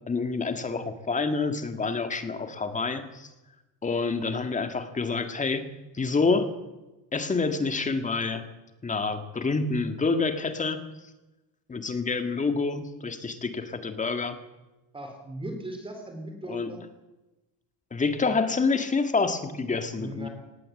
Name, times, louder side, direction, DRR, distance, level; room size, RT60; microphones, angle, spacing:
voice 1, 0.1-3.3 3.8-5.6 5.9-6.5 7.1-8.4 8.8-10.8 11.7-14.4 16.5-16.7 17.9-20.3, left 4 dB, 20° left, 8 dB, 2.0 m, -27 dB
voice 2, 14.9-16.8 19.9-20.3, right 2 dB, 15° right, 4 dB, 3.2 m, -38 dB
18.5 x 18.0 x 7.8 m, 1.0 s
cardioid pair, 150°, 40 cm